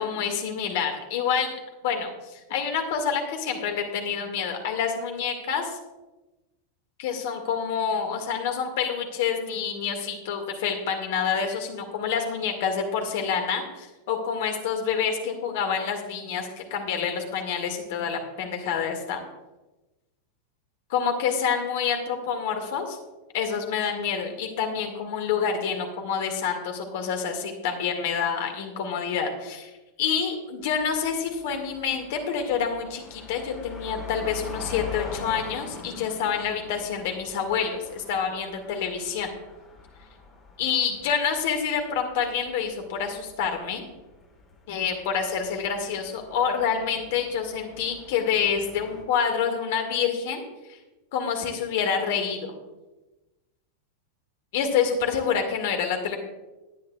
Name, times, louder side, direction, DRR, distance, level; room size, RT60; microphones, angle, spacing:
voice 1, 0.0-1.6 1.8-5.8 7.0-19.2 20.9-23.0 23.3-29.7 30.0-39.3 40.6-43.8 44.7-50.4 50.7-50.8 51.1-52.6 54.5-56.2, left 7 dB, 50° left, 4 dB, 1.9 m, -27 dB
sound 1, 30.6-49.0, left 5 dB, 15° left, 4.1 m, -44 dB
18.5 x 9.4 x 2.3 m, 1.1 s
figure-of-eight pair, 90°, 0 cm